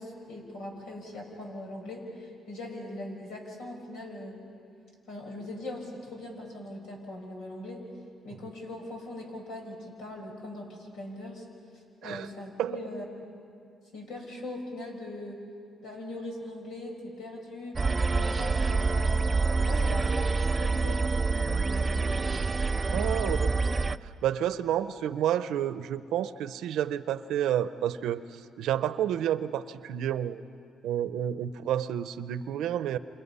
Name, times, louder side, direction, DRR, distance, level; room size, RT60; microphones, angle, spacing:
voice 1, 0.0-4.4 5.1-7.9 8.2-11.4 12.0-13.3 13.9-15.4 15.8-19.2 19.6-22.3 22.9-23.4, left 1 dB, 85° left, 1 dB, 5.8 m, -40 dB
sound 1, 17.8-24.0, right 4 dB, 25° right, 0.5 m, -26 dB
voice 2, 22.9-23.4 24.2-28.2 28.6-30.4 30.8-33.0, right 10 dB, 85° right, 13 dB, 0.7 m, -29 dB
28.5 x 28.0 x 5.6 m, 2.4 s
cardioid pair, 90°, 0 cm